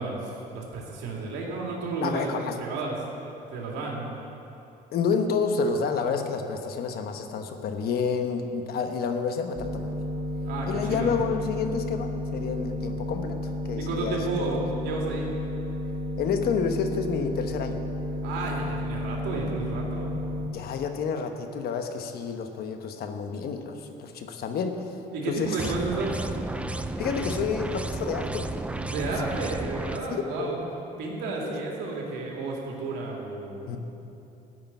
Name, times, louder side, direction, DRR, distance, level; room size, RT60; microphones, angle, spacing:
voice 1, 0.0-3.0 3.5-4.0 10.4-11.2 13.8-15.3 18.2-20.2 25.1-26.2 28.9-30.6 31.0-33.7, right 3 dB, 85° right, -2 dB, 2.6 m, -32 dB
voice 2, 2.0-2.6 4.9-9.9 10.7-14.2 16.2-17.8 20.5-24.8 25.3-25.5 27.0-28.5 29.0-29.1 30.1-30.5 31.4-31.9 33.7-33.8, left 5 dB, 65° left, 6 dB, 1.2 m, -29 dB
sound 1, 9.6-20.5, left 1 dB, 35° right, 1.2 m, -32 dB
sound 2, 25.6-30.0, right 2 dB, 5° right, 0.5 m, -33 dB
13.5 x 6.8 x 9.1 m, 2.8 s
cardioid pair, 110°, 17 cm